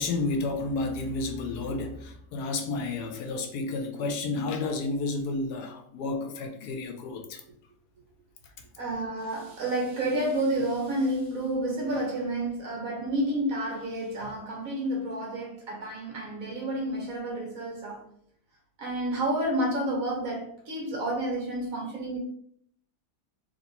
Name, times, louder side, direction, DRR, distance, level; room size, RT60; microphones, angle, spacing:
voice 1, 0.0-7.4, left 3 dB, 75° left, 1.2 m, -31 dB
voice 2, 8.8-18.1 18.8-22.2, right 1 dB, 60° right, 1.6 m, -30 dB
3.3 x 3.0 x 4.1 m
omnidirectional pair, 1.8 m